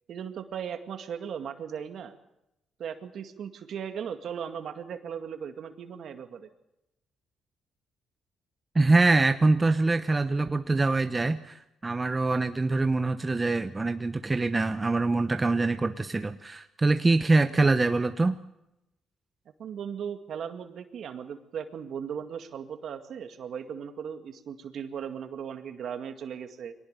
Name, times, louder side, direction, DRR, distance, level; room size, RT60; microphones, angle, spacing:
voice 1, 0.1-2.2 2.8-6.5 19.6-26.7, right 7 dB, 65° right, 7 dB, 2.1 m, -37 dB
voice 2, 8.7-18.4, right 3 dB, 25° right, 9 dB, 0.9 m, -24 dB
23.5 x 18.5 x 6.8 m, 0.88 s
cardioid pair, 90°, 0 cm